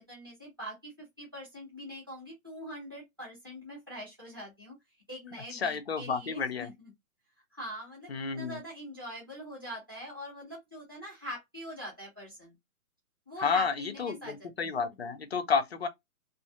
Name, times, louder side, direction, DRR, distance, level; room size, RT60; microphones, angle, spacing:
voice 1, 0.0-4.8 5.1-6.9 7.5-12.5 13.3-14.7, equal, 15° right, 0.6 m, -43 dB
voice 2, 5.5-6.7 8.1-8.6 13.4-15.9, left 5 dB, 50° left, 0.4 m, -31 dB
2.6 x 2.4 x 2.3 m
hypercardioid pair, 180°, 43 cm